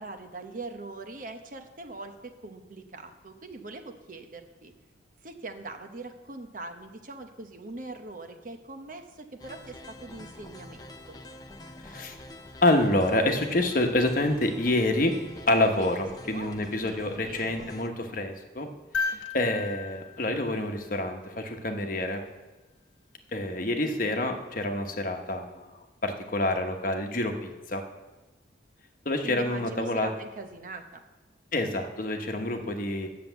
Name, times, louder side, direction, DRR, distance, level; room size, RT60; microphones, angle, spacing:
voice 1, 0.0-4.7 5.2-10.8 11.1-11.2 15.8-15.9 16.2-17.7 19.1-19.7 29.2-31.0, right 2 dB, 45° right, 5 dB, 0.9 m, -42 dB
sound 1, 9.4-17.9, left 1 dB, 20° left, 0.7 m, -46 dB
voice 2, 11.8-12.2 12.6-15.1 15.5-18.7 19.0-22.2 23.3-25.6 26.0-27.8 29.0-30.1 31.5-33.1, left 1 dB, 45° left, 4 dB, 1.1 m, -27 dB
sound 2, 18.9-21.3 23.3-23.4, left 5 dB, 70° left, 1.0 m, -35 dB
9.5 x 6.9 x 8.0 m, 1.1 s
head